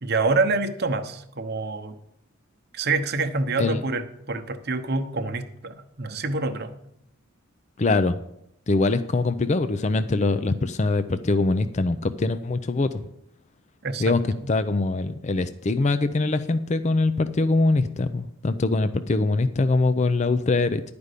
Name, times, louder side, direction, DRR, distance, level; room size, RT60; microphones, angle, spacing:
voice 1, 0.0-2.0 2.7-6.7 13.8-14.0 14.3-14.5, right 3 dB, 50° right, 6 dB, 0.9 m, -26 dB
voice 2, 7.8-8.2 8.7-13.0 14.0-14.2 14.5-20.8, left 3 dB, 35° left, 11 dB, 0.4 m, -23 dB
11.0 x 5.2 x 8.2 m, 0.76 s
head